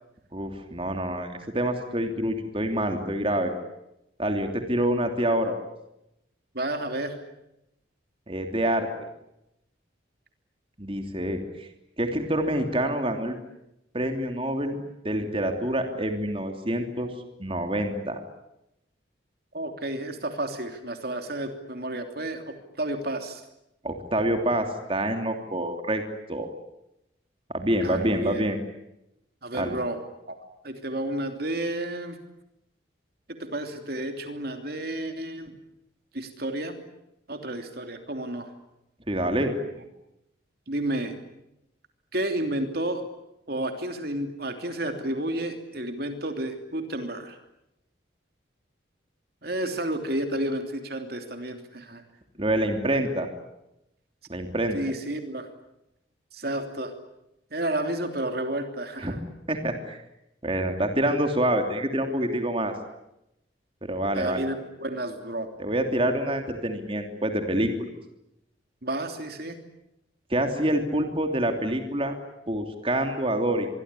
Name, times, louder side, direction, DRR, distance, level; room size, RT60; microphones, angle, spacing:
voice 1, 0.3-3.5 4.2-5.6 8.3-8.9 10.8-11.7 12.0-13.4 13.9-14.8 15.0-17.1 17.4-18.2 23.8-26.0 26.3-26.5 27.5-28.6 29.5-29.8 39.1-39.5 52.4-53.3 54.3-54.8 59.0-59.1 59.5-60.0 60.4-62.7 63.8-64.4 65.6-67.7 70.3-72.2 72.5-73.7, right 1 dB, 30° right, 5 dB, 3.0 m, -26 dB
voice 2, 6.5-7.2 19.5-23.4 27.8-28.4 29.4-30.0 30.3-30.4 30.6-32.2 33.3-35.5 36.1-36.8 37.3-38.5 40.7-41.2 42.1-43.0 43.5-47.4 49.4-52.0 54.7-55.5 56.3-56.9 57.5-59.2 64.1-65.5 68.8-69.6, right 1 dB, 50° right, 6 dB, 3.1 m, -31 dB
25.5 x 23.0 x 9.8 m, 0.86 s
head